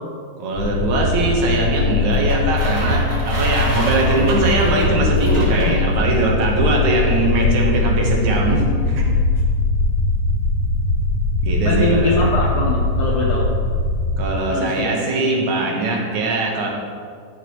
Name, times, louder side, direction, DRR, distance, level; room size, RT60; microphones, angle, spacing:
voice 1, 0.4-9.1 11.4-12.1 14.2-16.7, right 2 dB, 80° right, -1 dB, 2.6 m, -21 dB
sound 1, 0.5-14.2, left 2 dB, 25° left, 2.5 m, -20 dB
sound 2, 2.1-6.2, right 1 dB, 35° right, 1.2 m, -29 dB
voice 2, 11.6-13.5 14.5-14.9, left 2 dB, 70° left, -3 dB, 1.3 m, -22 dB
13.5 x 5.8 x 3.1 m, 2.1 s
omnidirectional pair, 3.4 m